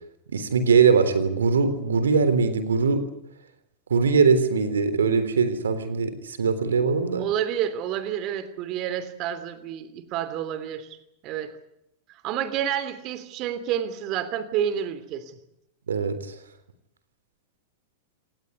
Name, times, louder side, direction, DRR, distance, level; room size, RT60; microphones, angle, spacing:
voice 1, 0.3-3.0 3.9-7.3 15.9-16.4, right 5 dB, 85° right, 12 dB, 3.5 m, -21 dB
voice 2, 7.2-11.0 11.2-11.5 12.1-15.4, right 10 dB, 45° right, 13 dB, 3.1 m, -29 dB
28.0 x 19.0 x 8.3 m, 0.81 s
hypercardioid pair, 100°, 0 cm